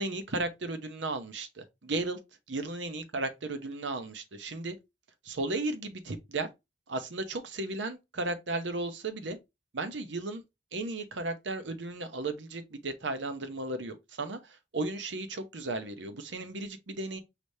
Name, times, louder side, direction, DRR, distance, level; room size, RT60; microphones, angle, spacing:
voice 1, 0.0-2.2 2.5-4.8 5.2-6.5 6.9-9.4 9.7-10.4 10.7-17.2, right 2 dB, 90° right, 0.8 m, -35 dB
4.9 x 2.7 x 3.2 m
head